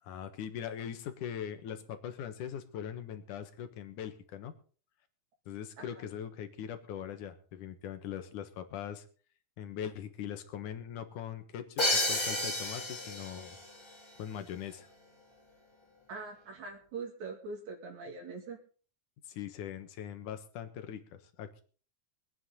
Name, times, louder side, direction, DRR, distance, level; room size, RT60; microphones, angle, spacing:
voice 1, 0.0-4.5 5.5-9.0 9.6-13.6 14.2-14.9 19.2-21.6, left 9 dB, 85° left, 8 dB, 2.9 m, -41 dB
Crash cymbal, 11.8-13.6, left 1 dB, 10° left, 1.5 m, -31 dB
voice 2, 16.1-18.6, right 4 dB, 70° right, 0 dB, 3.6 m, -42 dB
23.0 x 9.5 x 3.9 m, 0.40 s
omnidirectional pair, 3.5 m